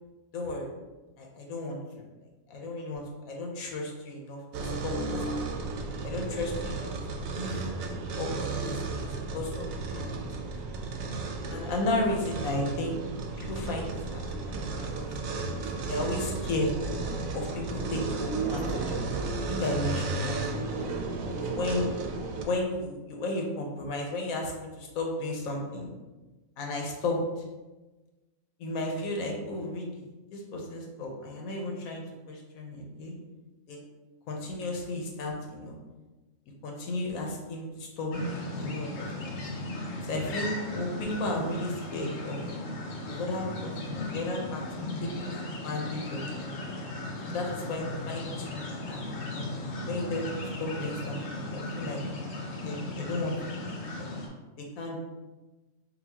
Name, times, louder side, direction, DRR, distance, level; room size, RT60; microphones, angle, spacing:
voice 1, 0.3-0.7 1.2-1.8 2.5-5.4 6.0-6.9 7.3-7.7 8.2-9.1 9.3-10.2 11.5-13.0 13.4-14.9 15.3-16.7 17.3-20.9 21.4-21.8 22.5-25.9 26.6-27.4 28.6-30.0 30.3-33.1 33.7-33.8 34.3-35.8 36.6-39.4 40.0-42.4 43.1-44.6 45.0-46.5 47.2-49.5 49.8-52.0 52.6-53.3 54.0-54.1 54.6-55.0, left 2 dB, 90° left, 0 dB, 1.2 m, -34 dB
sound 1, 4.5-22.4, right 3 dB, 75° right, 1.0 m, -33 dB
sound 2, 38.1-54.3, left 1 dB, 70° left, 1.0 m, -36 dB
5.4 x 2.3 x 2.8 m, 1.2 s
omnidirectional pair, 1.4 m